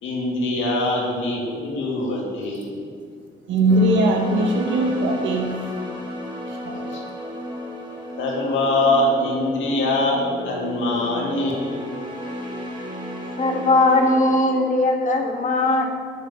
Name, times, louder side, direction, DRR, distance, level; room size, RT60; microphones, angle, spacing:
voice 1, 0.0-2.7 6.7-7.0 8.2-11.6, left 2 dB, 75° left, -3 dB, 2.3 m, -23 dB
voice 2, 3.5-5.5 6.5-6.8, right 1 dB, 75° right, 2 dB, 1.4 m, -20 dB
sound 1, 3.7-14.4, equal, 20° right, 1.8 m, -33 dB
voice 3, 13.4-15.9, left 2 dB, 40° left, 2 dB, 1.5 m, -19 dB
6.6 x 6.6 x 6.7 m, 2.2 s
cardioid pair, 90°, 20 cm